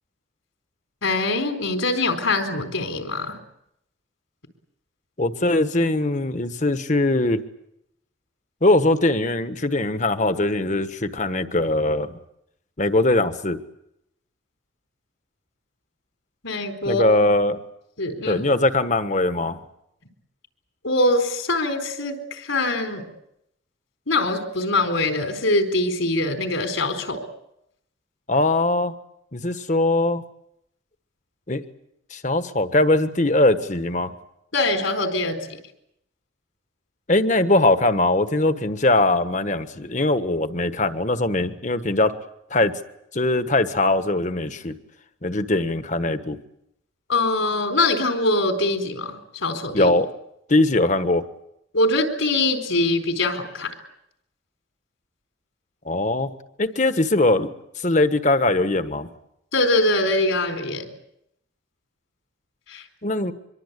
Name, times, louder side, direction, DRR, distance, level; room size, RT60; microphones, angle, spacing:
voice 1, 1.0-3.4 16.4-17.0 18.0-18.4 20.8-23.0 24.1-27.2 34.5-35.4 47.1-49.9 51.7-53.7 59.5-60.9 62.7-62.8, left 2 dB, 80° left, 6 dB, 4.3 m, -23 dB
voice 2, 5.2-7.4 8.6-12.2 12.8-13.6 16.8-17.6 18.2-19.6 28.3-28.9 29.3-30.2 31.5-31.6 32.1-34.1 37.1-42.1 42.5-42.7 43.1-44.8 45.2-46.4 49.7-50.1 50.5-51.2 55.8-56.3 56.6-59.1 63.0-63.3, left 2 dB, 35° left, 10 dB, 1.4 m, -21 dB
24.5 x 23.0 x 8.3 m, 0.79 s
head